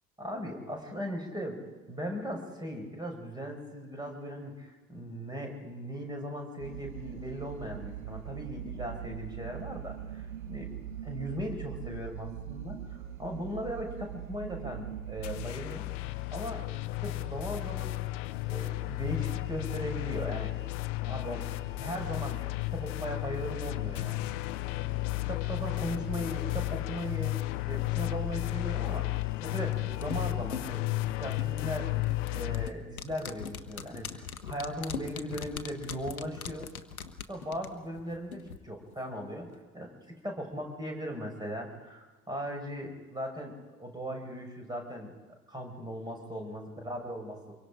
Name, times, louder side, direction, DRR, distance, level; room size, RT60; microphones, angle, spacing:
voice 1, 0.2-1.6 1.9-10.7 11.0-12.8 13.2-15.9 16.3-16.7 17.0-18.0 18.5-20.5 21.1-24.3 25.3-27.4 27.7-31.9 32.3-36.7 37.3-39.5 39.7-43.5 43.8-45.1 45.5-47.6, equal, 10° right, 2 dB, 5.5 m, -38 dB
sound 1, 6.6-15.5, right 10 dB, 70° right, 1.3 m, -41 dB
sound 2, 15.2-32.7, left 18 dB, 60° left, 0.9 m, -33 dB
sound 3, 29.2-38.6 38.9-39.0, left 7 dB, 75° left, 1.2 m, -42 dB
25.0 x 23.0 x 5.1 m, 1.3 s
figure-of-eight pair, 65°, 42 cm